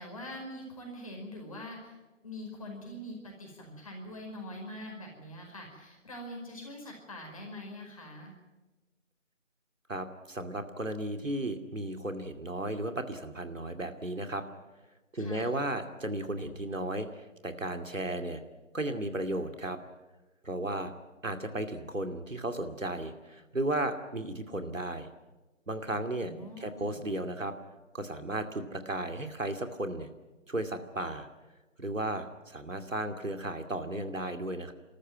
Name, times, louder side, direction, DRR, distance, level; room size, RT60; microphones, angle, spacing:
voice 1, 0.0-1.9 2.2-8.3 15.1-15.5 26.2-27.0, left 1 dB, 25° left, 0 dB, 5.0 m, -43 dB
voice 2, 9.9-14.4 15.1-18.4 18.7-19.8 20.4-20.9 21.2-25.1 25.7-26.3 26.6-27.5 27.9-30.1 30.5-31.3 31.8-34.7, right 1 dB, 80° right, 7 dB, 2.5 m, -34 dB
29.0 x 13.5 x 9.5 m, 1.2 s
figure-of-eight pair, 165°, 38 cm